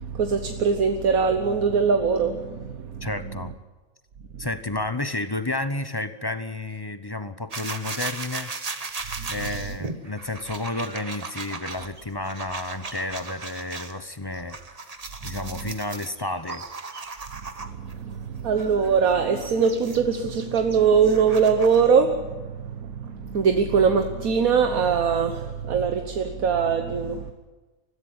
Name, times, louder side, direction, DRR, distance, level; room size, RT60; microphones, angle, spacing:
voice 1, 0.0-3.4 4.3-4.4 9.2-9.3 15.2-15.6 17.6-27.3, right 6 dB, 80° right, 1.6 m, -22 dB
voice 2, 3.0-3.5 4.4-8.5 9.3-14.6 15.2-16.6, left 2 dB, 20° left, 0.8 m, -31 dB
sound 1, 7.5-13.9 14.3-17.9 18.5-21.9, right 3 dB, 30° right, 1.1 m, -37 dB
21.0 x 14.5 x 9.6 m
omnidirectional pair, 1.5 m